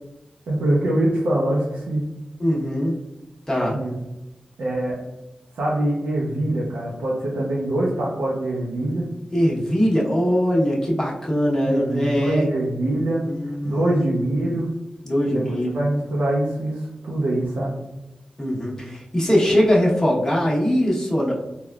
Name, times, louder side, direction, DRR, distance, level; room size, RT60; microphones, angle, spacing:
voice 1, 0.5-2.0 3.7-3.9 4.6-5.0 5.5-9.1 11.7-13.2 13.6-14.7 15.3-17.7, right 1 dB, 90° right, -5 dB, 0.5 m, -24 dB
voice 2, 2.4-2.9 3.5-3.8 9.3-12.5 13.3-14.0 15.0-15.8 18.4-21.3, equal, 20° left, -5 dB, 1.0 m, -21 dB
3.5 x 2.2 x 2.3 m, 0.97 s
cardioid pair, 40°, 3 cm